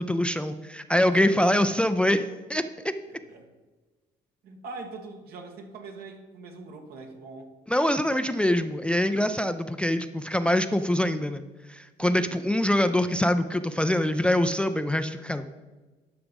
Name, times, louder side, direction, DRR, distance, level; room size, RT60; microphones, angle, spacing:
voice 1, 0.0-2.9 7.7-15.5, left 1 dB, 5° left, 10 dB, 0.4 m, -24 dB
voice 2, 1.0-1.6 3.3-3.5 4.4-7.5 12.0-12.4, right 3 dB, 70° right, 4 dB, 1.6 m, -43 dB
10.5 x 5.9 x 5.3 m, 1.2 s
cardioid pair, 110°, 17 cm